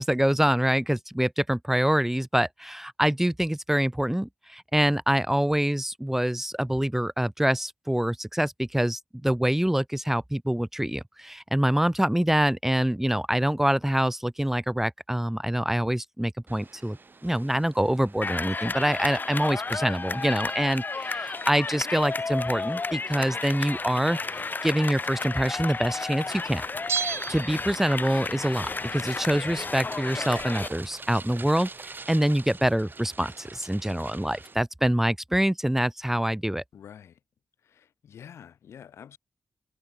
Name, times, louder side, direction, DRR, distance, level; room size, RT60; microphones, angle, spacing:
voice 1, 0.0-17.0 17.2-24.2 24.6-26.6 27.0-36.6, right 1 dB, 5° right, 0.6 m, -25 dB
sound 1, 16.5-34.5, right 4 dB, 50° right, 6.8 m, -48 dB
sound 2, 18.2-30.7, left 4 dB, 45° left, 2.1 m, -32 dB
Bell, 26.9-28.3 28.6-28.7, right 6 dB, 70° right, 0.8 m, -32 dB
voice 2, 36.7-37.2 37.6-39.2, left 8 dB, 90° left, 2.3 m, -47 dB
cardioid pair, 50°, 4 cm